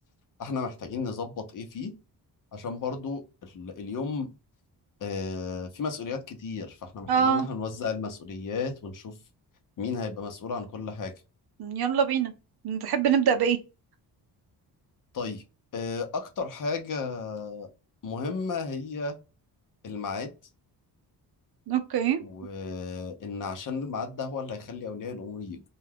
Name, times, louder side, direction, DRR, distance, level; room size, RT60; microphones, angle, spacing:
voice 1, 0.4-1.9 2.5-4.3 5.0-9.1 9.8-11.1 15.1-15.4 15.7-17.7 18.0-19.2 19.8-20.3 22.2-25.6, left 4 dB, 50° left, 0.7 m, -34 dB
voice 2, 7.1-7.5 11.6-12.3 12.6-13.6 21.7-22.2, right 7 dB, 65° right, 0.6 m, -24 dB
2.3 x 2.3 x 3.4 m
cardioid pair, 95°, 40 cm